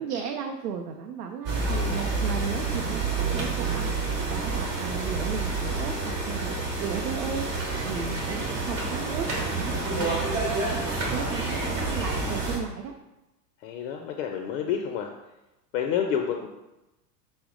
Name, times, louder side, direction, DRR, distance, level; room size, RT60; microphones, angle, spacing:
voice 1, 0.0-12.9, right 7 dB, 70° right, 4 dB, 0.5 m, -35 dB
sound 1, 1.5-12.6, right 3 dB, 30° right, 1.2 m, -28 dB
voice 2, 13.6-15.1 15.7-16.5, left 8 dB, 50° left, 3 dB, 0.5 m, -28 dB
5.6 x 2.0 x 3.8 m, 0.98 s
hypercardioid pair, 95°, 48 cm